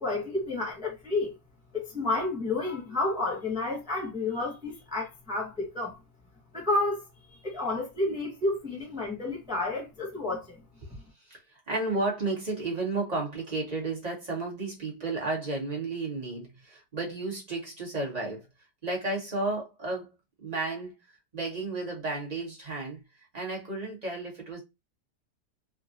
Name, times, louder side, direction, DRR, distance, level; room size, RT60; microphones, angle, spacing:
voice 1, 0.0-1.4 1.7-6.0 6.5-7.0 7.4-10.6 10.9-11.0, left 2 dB, 5° right, 0.6 m, -30 dB
voice 2, 11.3-18.4 18.8-20.1 20.4-20.9 21.3-23.0 23.3-24.6, right 2 dB, 25° right, 1.1 m, -32 dB
3.6 x 2.3 x 2.6 m
omnidirectional pair, 1.8 m